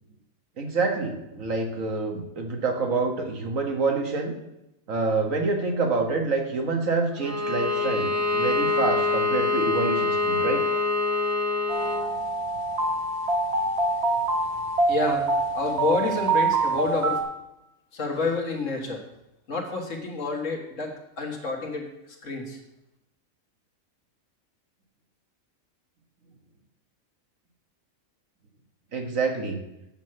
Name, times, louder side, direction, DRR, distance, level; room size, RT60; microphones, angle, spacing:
voice 1, 0.6-4.3 4.9-10.6 28.9-29.6, right 3 dB, 70° right, 4 dB, 1.7 m, -27 dB
Bowed string instrument, 7.2-12.1, left 3 dB, 20° right, 0.5 m, -25 dB
sound 1, 11.7-17.2, right 2 dB, 50° right, 1.3 m, -25 dB
voice 2, 14.9-15.3 15.5-17.2 17.9-19.0 19.5-21.9 22.2-22.6, left 3 dB, 65° left, 2 dB, 2.0 m, -28 dB
8.1 x 6.3 x 7.5 m, 0.89 s
omnidirectional pair, 1.4 m